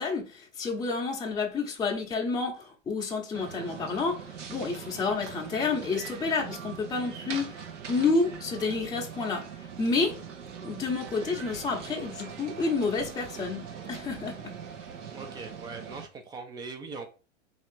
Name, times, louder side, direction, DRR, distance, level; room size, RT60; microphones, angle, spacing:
voice 1, 0.0-10.2 10.6-14.6, left 4 dB, 10° left, 0.8 m, -30 dB
sound 1, 3.3-16.1, right 7 dB, 65° right, 1.0 m, -42 dB
voice 2, 15.1-17.1, right 4 dB, 10° right, 0.4 m, -41 dB
3.3 x 2.8 x 4.4 m
figure-of-eight pair, 105°, 38 cm